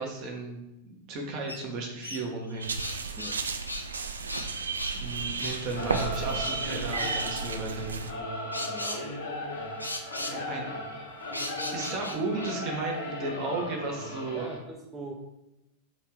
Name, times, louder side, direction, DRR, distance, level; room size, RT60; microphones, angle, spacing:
voice 1, 0.0-2.8 4.9-7.9 10.3-10.7 11.7-14.5, right 3 dB, 40° right, 0 dB, 0.9 m, -34 dB
sound 1, 1.5-1.6 2.0-3.4 3.7-3.9 4.3-5.0 5.4-5.6 5.9-6.6 6.9-7.1 8.5-9.0 9.8-10.4 11.3-12.6, left 1 dB, 85° left, 0.4 m, -37 dB
sound 2, 2.6-8.1, right 4 dB, 75° right, 0.3 m, -33 dB
Singing / Musical instrument, 5.7-14.6, left 1 dB, 60° left, 1.0 m, -37 dB
voice 2, 8.5-9.3 14.3-15.1, right 2 dB, 10° right, -2 dB, 0.6 m, -42 dB
3.3 x 3.0 x 4.5 m, 0.91 s
figure-of-eight pair, 90°, 0 cm